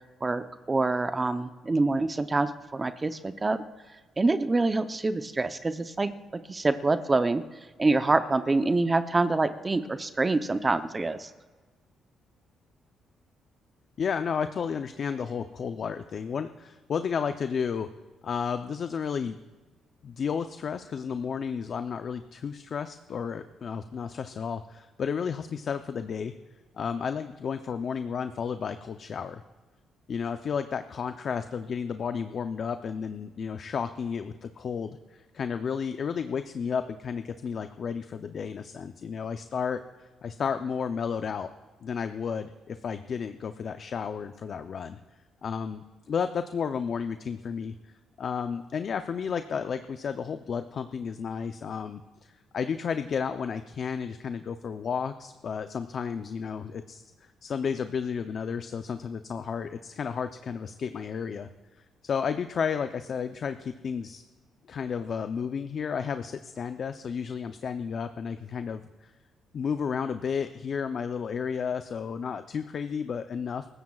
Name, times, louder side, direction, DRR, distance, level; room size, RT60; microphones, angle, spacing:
voice 1, 0.2-3.6 4.2-7.4 7.8-11.3, right 3 dB, 25° right, 10 dB, 0.7 m, -26 dB
voice 2, 14.0-17.9 18.2-19.4 20.0-26.3 26.7-29.4 30.1-41.5 41.8-45.0 45.4-57.0 57.4-61.5 61.7-64.2 64.7-69.1 69.5-73.7, left 6 dB, 55° left, 9 dB, 0.6 m, -32 dB
24.0 x 14.0 x 2.4 m, 1.3 s
cardioid pair, 90°, 0 cm